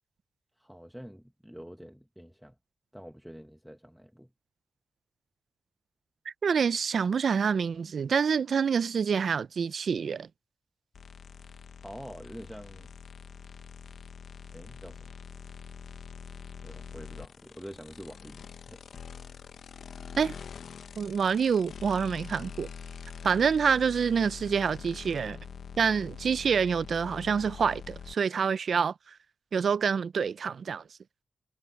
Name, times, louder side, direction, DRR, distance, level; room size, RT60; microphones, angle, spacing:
voice 1, 0.6-2.6 2.9-4.3 11.8-12.9 14.5-15.2 16.6-18.8, equal, 5° right, 1.5 m, -46 dB
voice 2, 6.4-10.3 20.2-20.3 21.0-22.7 23.2-25.4 25.8-28.9 29.5-30.8, right 6 dB, 75° right, 0.5 m, -27 dB
sound 1, 10.9-28.1, left 7 dB, 90° left, 1.1 m, -45 dB
cardioid pair, 70°, 0 cm